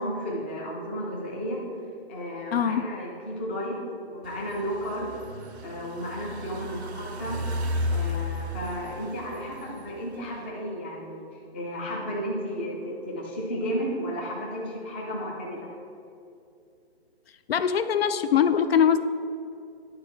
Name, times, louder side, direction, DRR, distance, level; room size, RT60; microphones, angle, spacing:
voice 1, 0.0-1.6 2.1-3.8 4.0-5.1 5.6-7.4 7.9-11.2 11.5-15.7, equal, 10° left, -3 dB, 0.4 m, -33 dB
voice 2, 2.5-2.9 17.5-19.0, left 8 dB, 70° left, 12 dB, 0.5 m, -22 dB
sound 1, 4.2-10.5, left 1 dB, 90° right, 0.8 m, -34 dB
10.5 x 4.0 x 4.4 m, 2.5 s
hypercardioid pair, 150°, 32 cm